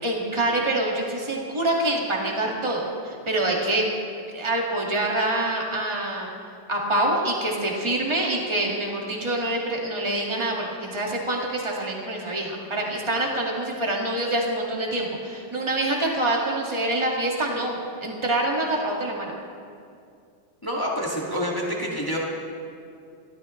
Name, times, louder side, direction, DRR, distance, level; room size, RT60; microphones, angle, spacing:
voice 1, 0.0-3.9 4.3-6.3 6.7-19.3, right 1 dB, 20° right, -2 dB, 0.7 m, -26 dB
voice 2, 20.6-22.2, equal, 10° left, -4 dB, 1.0 m, -27 dB
29.5 x 13.0 x 3.2 m, 2.4 s
omnidirectional pair, 4.0 m